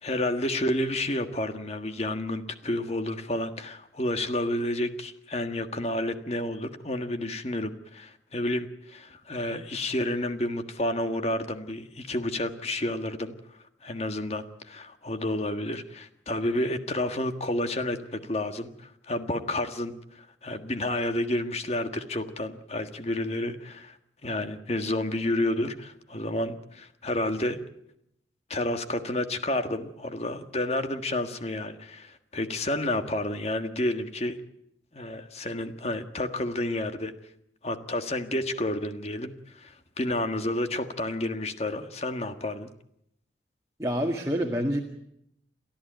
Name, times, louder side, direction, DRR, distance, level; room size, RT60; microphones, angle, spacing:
voice 1, 0.0-13.3 13.8-24.0 24.2-27.6 28.5-34.4 34.9-37.1 37.6-42.7, left 1 dB, 35° left, 8 dB, 1.6 m, -30 dB
voice 2, 43.8-44.8, equal, 15° right, 1 dB, 1.9 m, -27 dB
30.0 x 13.5 x 9.2 m, 0.77 s
head